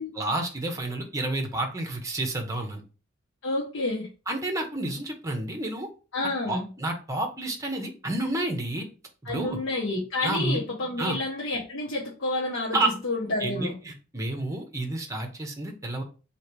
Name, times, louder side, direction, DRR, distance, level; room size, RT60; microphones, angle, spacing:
voice 1, 0.1-2.8 4.3-5.9 6.5-8.9 9.2-9.6 10.2-10.6 11.0-11.2 12.7-12.9 13.4-16.0, right 2 dB, 15° right, 3 dB, 0.9 m, -30 dB
voice 2, 3.4-4.1 6.1-6.7 9.2-13.7, left 2 dB, 80° left, -4 dB, 1.0 m, -29 dB
3.1 x 2.9 x 4.6 m, 0.34 s
head